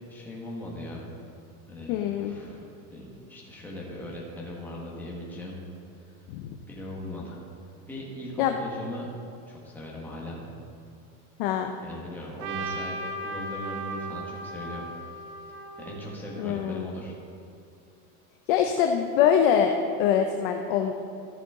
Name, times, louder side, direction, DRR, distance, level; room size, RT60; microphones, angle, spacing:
voice 1, 0.1-1.1 1.7-2.6 2.9-5.6 6.7-7.4 7.9-9.1 9.5-10.4 11.8-13.0 13.2-14.8 15.8-17.1, left 1 dB, 5° left, -4 dB, 1.2 m, -39 dB
voice 2, 1.9-2.3 6.3-6.6 8.4-8.6 11.4-11.7 16.4-16.9 18.5-20.9, left 8 dB, 40° left, 4 dB, 0.4 m, -24 dB
Trumpet, 12.4-16.6, right 2 dB, 85° right, 1.0 m, -37 dB
13.5 x 6.8 x 3.6 m, 2.6 s
supercardioid pair, 170°, 43 cm